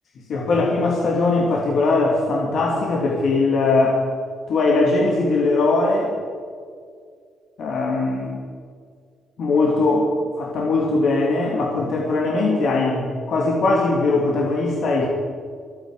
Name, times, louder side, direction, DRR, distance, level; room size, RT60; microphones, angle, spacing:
voice 1, 0.3-4.0 4.5-6.2 7.6-8.4 9.4-10.1 10.4-15.1, left 3 dB, 60° left, -2 dB, 2.5 m, -20 dB
27.0 x 9.6 x 4.9 m, 2.1 s
cardioid pair, 120°, 0 cm